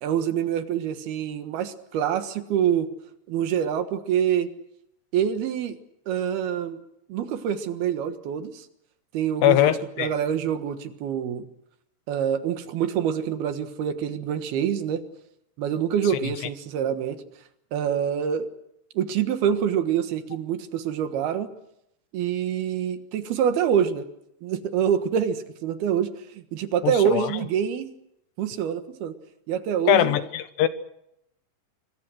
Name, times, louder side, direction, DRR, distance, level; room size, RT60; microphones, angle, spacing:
voice 1, 0.0-2.9 3.3-4.5 5.1-5.8 6.1-6.8 7.1-8.7 9.1-9.7 10.0-11.4 12.1-15.0 15.6-17.2 17.7-18.5 18.9-21.5 22.1-24.0 24.4-27.9 28.4-29.2 29.5-30.2, right 8 dB, 70° right, 9 dB, 3.3 m, -26 dB
voice 2, 9.4-10.1 26.8-27.3 29.9-30.7, left 13 dB, 80° left, 12 dB, 3.4 m, -21 dB
26.0 x 23.5 x 6.4 m, 0.78 s
omnidirectional pair, 4.8 m